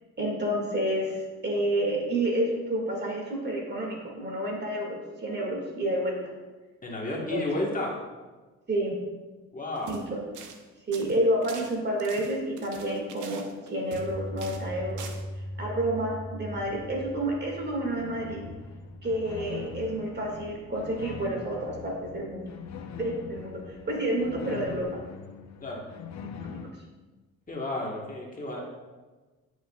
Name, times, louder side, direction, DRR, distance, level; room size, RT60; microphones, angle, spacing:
voice 1, 0.2-6.3 7.1-7.6 8.7-9.0 9.9-10.2 10.9-15.1 15.6-18.4 19.0-22.5 23.0-25.0 26.4-26.6, right 1 dB, 35° right, -1 dB, 2.1 m, -29 dB
voice 2, 6.8-7.9 9.5-9.9 25.6-25.8 27.5-28.6, left 1 dB, 25° left, -2 dB, 1.4 m, -32 dB
sound 1, 9.7-10.1 10.3-10.6 10.9-14.1 14.4-14.7 15.0-15.2, right 6 dB, 80° right, 0.8 m, -44 dB
sound 2, 13.9-24.8, equal, 10° right, 1.0 m, -42 dB
sound 3, 18.0-26.7, left 7 dB, 65° left, 0.7 m, -43 dB
10.5 x 6.1 x 2.4 m, 1.3 s
cardioid pair, 90°, 30 cm